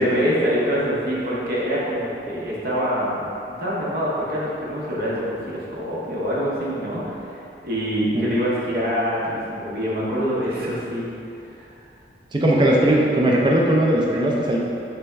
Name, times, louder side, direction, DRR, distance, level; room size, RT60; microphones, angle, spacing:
voice 1, 0.0-11.1, equal, 55° right, -6 dB, 0.8 m, -25 dB
voice 2, 12.3-14.6, right 1 dB, 25° right, -2 dB, 0.4 m, -18 dB
3.3 x 3.1 x 3.4 m, 2.6 s
head